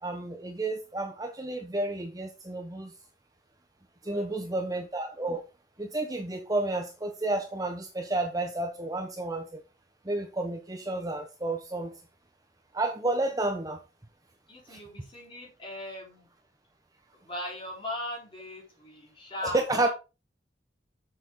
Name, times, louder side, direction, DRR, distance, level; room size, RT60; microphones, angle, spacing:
voice 1, 0.0-2.9 4.0-5.5 5.8-9.6 10.0-11.9 12.7-13.8 14.7-14.8 19.4-19.9, right 2 dB, 20° right, 5 dB, 0.9 m, -31 dB
voice 2, 4.0-4.6 14.5-16.3 17.2-19.9, left 1 dB, 30° left, -3 dB, 4.3 m, -39 dB
7.1 x 6.5 x 3.8 m, 0.28 s
head